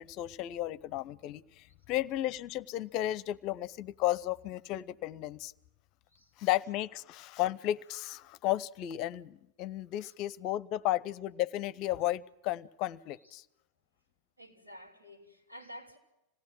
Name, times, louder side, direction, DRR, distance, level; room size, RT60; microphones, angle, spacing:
voice 1, 0.0-5.5 6.4-13.4, left 14 dB, 40° left, 19 dB, 0.7 m, -34 dB
voice 2, 14.4-16.0, equal, 85° right, -3 dB, 5.2 m, -51 dB
26.5 x 18.0 x 6.2 m, 0.89 s
figure-of-eight pair, 90°, 0 cm